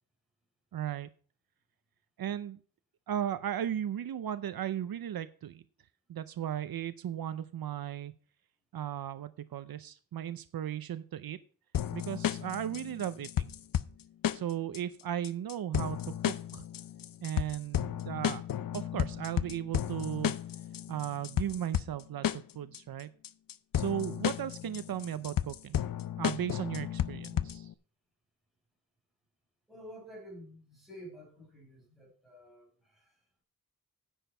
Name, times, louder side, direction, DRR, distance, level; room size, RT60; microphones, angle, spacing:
voice 1, 0.7-1.1 2.2-2.6 3.1-5.6 6.1-8.1 8.7-11.4 11.9-13.5 14.3-16.6 17.2-18.4 18.7-20.3 20.9-23.1 23.7-25.8 26.2-27.7, right 10 dB, 75° right, 13 dB, 0.6 m, -36 dB
sound 1, 11.7-27.7, left 10 dB, 65° left, 0.6 m, -33 dB
voice 2, 29.7-33.2, equal, ahead, -3 dB, 5.2 m, -50 dB
10.0 x 7.2 x 5.5 m, 0.44 s
wide cardioid pair, 170°, 36 cm